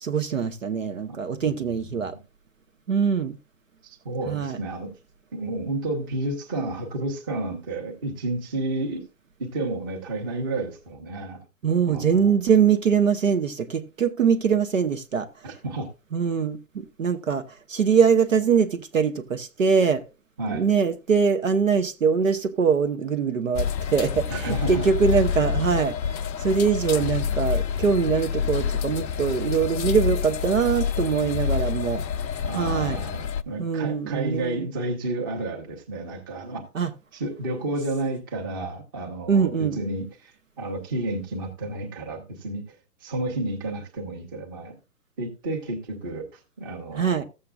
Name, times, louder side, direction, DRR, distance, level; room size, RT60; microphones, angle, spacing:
voice 1, 0.0-2.1 2.9-3.4 4.3-4.6 11.6-15.5 16.1-20.0 20.5-32.0 32.5-33.0 33.6-34.7 36.7-36.9 39.3-39.8 46.9-47.2, right 6 dB, 50° right, 1.1 m, -23 dB
voice 2, 1.1-2.2 3.8-4.9 5.3-9.0 9.4-11.4 11.9-12.4 15.4-15.9 20.4-20.7 24.3-24.9 32.4-36.6 37.1-42.6 43.0-44.7 45.2-47.2, right 2 dB, 15° right, 1.2 m, -31 dB
sound 1, 23.6-33.4, left 7 dB, 85° left, 0.7 m, -27 dB
14.5 x 7.7 x 2.3 m
hypercardioid pair, 170°, 50 cm